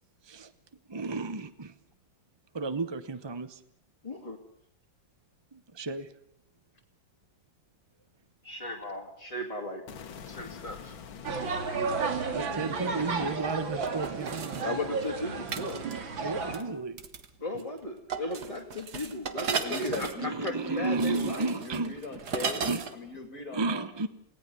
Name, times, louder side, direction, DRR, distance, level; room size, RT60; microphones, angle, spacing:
voice 1, 0.9-1.7 2.5-3.6 5.5-6.1 12.3-14.6 16.2-17.0 20.2-21.9 22.6-22.8 23.5-24.1, right 3 dB, 30° right, 12 dB, 0.4 m, -33 dB
voice 2, 4.0-4.4 8.4-9.8 10.3-10.9 14.6-15.8 17.4-21.4, left 1 dB, 20° left, 0 dB, 2.2 m, -36 dB
sound 1, 9.9-15.9, left 7 dB, 90° left, 2.2 m, -48 dB
sound 2, 11.2-16.6, right 4 dB, 85° right, 3.1 m, -33 dB
sound 3, 13.8-14.7 15.5-16.0 16.5-16.6 17.0-17.3 17.5-17.8 18.1-22.9 23.2-23.3, right 5 dB, 55° right, 2.0 m, -35 dB
voice 3, 19.5-23.9, left 3 dB, 50° left, 7 dB, 2.4 m, -40 dB
29.5 x 18.0 x 6.9 m, 0.66 s
omnidirectional pair, 2.1 m